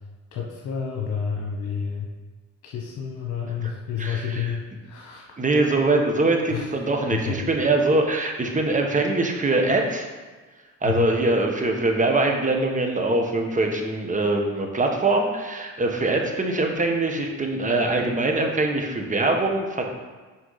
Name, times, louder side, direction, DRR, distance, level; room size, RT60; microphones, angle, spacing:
voice 1, 0.3-2.1 2.6-5.4 6.5-6.7 7.2-7.5 10.8-11.1, left 7 dB, 80° left, -1 dB, 1.2 m, -30 dB
voice 2, 5.4-10.1 10.8-19.9, right 2 dB, 25° right, 2 dB, 1.3 m, -23 dB
6.3 x 4.7 x 5.7 m, 1.3 s
cardioid pair, 90°, 30 cm